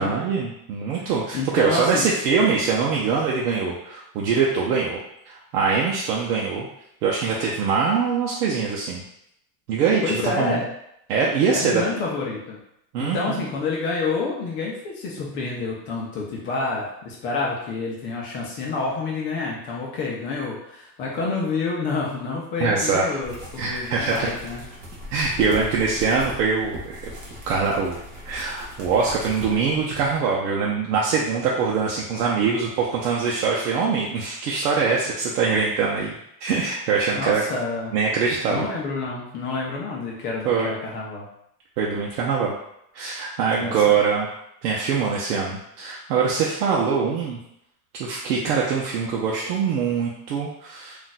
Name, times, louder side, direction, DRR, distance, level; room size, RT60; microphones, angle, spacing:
voice 1, 0.0-5.0 5.3-6.7 7.0-9.0 9.7-10.6 11.1-11.8 12.9-13.4 22.6-23.1 23.6-24.3 25.1-26.8 27.5-28.0 28.2-36.1 36.4-37.4 37.9-38.7 40.4-40.7 41.8-42.5 42.9-44.3 44.6-47.4 47.9-51.0, right 5 dB, 90° right, -4 dB, 0.7 m, -23 dB
voice 2, 1.3-2.1 10.0-10.7 11.5-12.6 13.0-24.6 25.5-25.7 37.1-37.9 38.5-41.3 43.6-44.0, left 4 dB, 25° left, -3 dB, 0.4 m, -28 dB
sound 1, 23.2-30.2, equal, 25° right, 0.5 m, -39 dB
2.5 x 2.2 x 3.9 m, 0.78 s
supercardioid pair, 160°, 45 cm